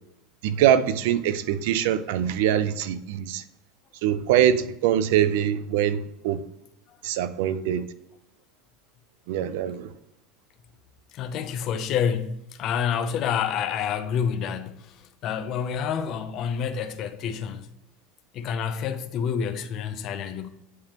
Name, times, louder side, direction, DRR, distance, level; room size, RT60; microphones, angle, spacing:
voice 1, 0.4-3.4 4.0-6.4 7.0-7.9 9.3-9.9, right 10 dB, 70° right, 0.5 m, -23 dB
voice 2, 11.1-17.7 18.3-20.5, left 7 dB, 45° left, 0.6 m, -28 dB
9.4 x 3.5 x 3.0 m
supercardioid pair, 145°, 0 cm